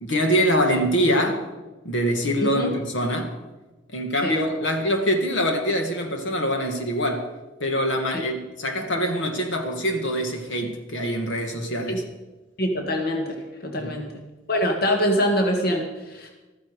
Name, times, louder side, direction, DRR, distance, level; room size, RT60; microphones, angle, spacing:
voice 1, 0.0-1.4 1.8-3.4 3.9-7.3 7.6-12.0 13.8-14.0, equal, 75° left, 2.0 m, -24 dB
voice 2, 2.4-2.7 4.2-4.4 8.1-8.2 11.9-12.0 12.6-13.4 13.6-14.1 14.5-16.3, equal, 55° left, 1.7 m, -24 dB
14.5 x 14.0 x 4.9 m
head